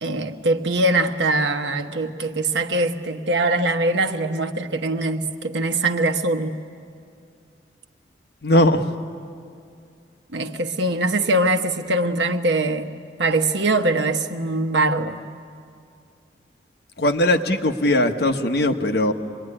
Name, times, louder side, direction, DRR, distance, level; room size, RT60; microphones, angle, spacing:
voice 1, 0.0-6.5 10.3-12.9 13.2-15.2, right 2 dB, 75° right, 7 dB, 1.2 m, -22 dB
voice 2, 8.4-8.8 17.0-19.1, left 1 dB, 60° left, 5 dB, 1.3 m, -19 dB
25.5 x 21.5 x 10.0 m, 2.4 s
head